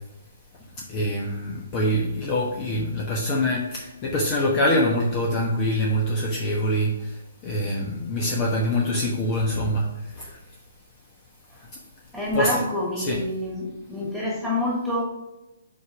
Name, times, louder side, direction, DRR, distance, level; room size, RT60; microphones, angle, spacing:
voice 1, 0.9-6.9 7.4-9.9 10.2-10.3 12.3-12.6 13.0-13.2, left 1 dB, 30° left, -2 dB, 1.1 m, -24 dB
voice 2, 12.1-15.0, left 1 dB, ahead, -4 dB, 2.4 m, -27 dB
5.4 x 4.9 x 5.0 m, 0.95 s
hypercardioid pair, 140°, 0 cm